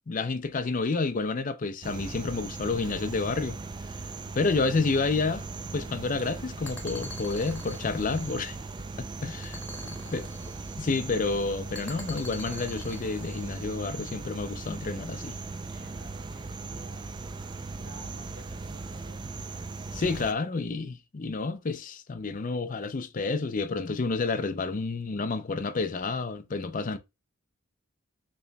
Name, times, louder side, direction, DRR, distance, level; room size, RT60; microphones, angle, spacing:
voice 1, 0.1-3.6 4.3-5.4 5.7-8.6 9.2-9.6 10.1-10.3 10.7-15.3 19.9-27.0, left 3 dB, 40° left, 0.5 m, -29 dB
sound 1, 1.8-20.3, right 3 dB, 20° right, 0.3 m, -39 dB
sound 2, 6.6-8.9 9.4-11.0 11.7-13.7, left 2 dB, 5° left, 1.1 m, -45 dB
voice 2, 9.2-10.2 15.7-17.2 17.7-19.3, right 1 dB, 50° right, 3.2 m, -53 dB
6.7 x 3.1 x 2.2 m
head